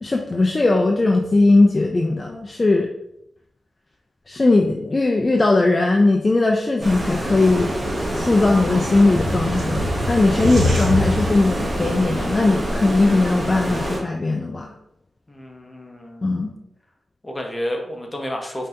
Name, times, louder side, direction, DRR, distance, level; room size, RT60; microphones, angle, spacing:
voice 1, 0.0-2.9 4.3-7.8 8.1-14.7 16.2-16.5, left 2 dB, 35° left, 1 dB, 0.4 m, -19 dB
Stream, 6.8-14.0, equal, 35° right, 1.2 m, -26 dB
sound 1, 7.2-12.3, left 1 dB, 75° right, 0.7 m, -27 dB
voice 2, 15.3-16.5 17.2-18.7, equal, 15° left, 1 dB, 0.9 m, -31 dB
5.2 x 2.8 x 2.6 m, 0.78 s
cardioid pair, 70°, 0 cm